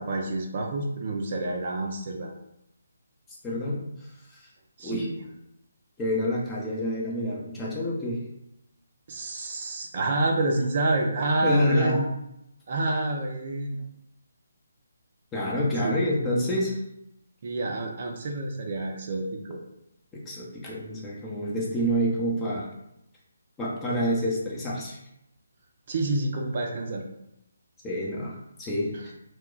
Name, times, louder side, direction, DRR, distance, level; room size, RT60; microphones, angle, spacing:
voice 1, 0.0-2.3 4.8-5.2 9.1-12.1 12.7-13.8 15.8-16.1 17.4-19.6 25.9-27.0 28.9-29.0, right 2 dB, 45° right, 1 dB, 0.4 m, -28 dB
voice 2, 3.4-3.9 4.3-4.4 4.8-5.1 6.0-8.2 11.4-12.1 15.3-16.8 20.1-22.7 23.6-25.0 27.8-28.9, equal, 10° left, -5 dB, 0.6 m, -27 dB
2.2 x 2.2 x 3.7 m, 0.83 s
figure-of-eight pair, 145°, 0 cm